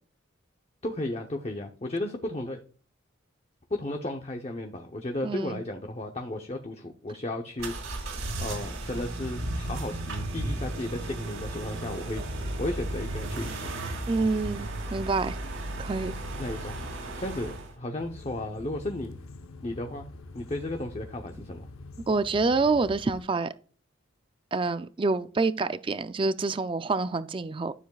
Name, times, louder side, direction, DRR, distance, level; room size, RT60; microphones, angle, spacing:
voice 1, 0.8-2.6 3.7-13.7 16.4-16.8 17.2-19.1 19.6-20.1 20.3-21.7, left 1 dB, 30° left, 0.7 m, -34 dB
voice 2, 5.2-5.6 14.1-15.4 15.8-16.1 22.1-23.5 24.5-27.7, right 3 dB, 25° right, 0.3 m, -27 dB
sound 1, 7.6-17.7, right 1 dB, 80° right, 3.4 m, -34 dB
sound 2, 18.0-23.2, left 2 dB, 80° left, 0.8 m, -45 dB
12.5 x 7.1 x 2.3 m
head